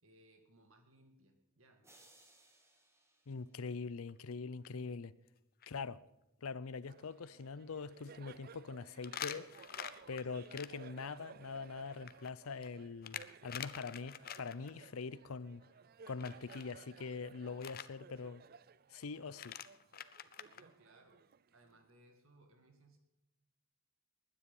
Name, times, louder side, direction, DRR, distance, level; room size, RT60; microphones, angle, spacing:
voice 1, 0.0-1.8 20.5-21.2 21.5-23.0, right 1 dB, 65° right, 2.2 m, -65 dB
sound 1, 1.8-4.2, right 2 dB, 15° right, 2.0 m, -66 dB
voice 2, 3.3-5.1 5.7-6.0 6.4-9.5 10.1-15.6 16.1-18.4 18.9-19.6, left 4 dB, 75° left, 0.6 m, -43 dB
sound 2, 4.1-4.3 4.6-4.7 5.3-5.4 5.6-5.7 9.0-10.7 11.9-14.7 16.2-16.7 17.6-17.9 19.0-19.1 19.3-20.6, left 9 dB, 45° left, 0.7 m, -46 dB
Laughter, 6.9-21.9, right 6 dB, 45° right, 0.4 m, -58 dB
20.5 x 10.0 x 5.5 m
head